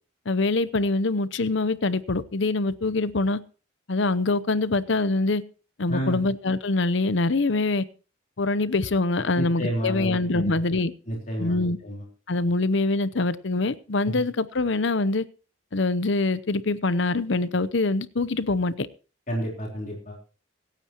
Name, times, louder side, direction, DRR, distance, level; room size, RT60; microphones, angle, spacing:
voice 1, 0.3-3.4 3.9-5.4 5.8-7.8 8.4-10.9 11.4-11.8 12.3-15.2 15.7-18.9, left 2 dB, 60° left, 16 dB, 0.7 m, -24 dB
voice 2, 5.9-6.2 9.4-10.6 11.1-12.0 14.0-14.1 19.3-20.2, equal, 40° left, -2 dB, 3.9 m, -30 dB
25.5 x 9.2 x 3.0 m, 0.38 s
head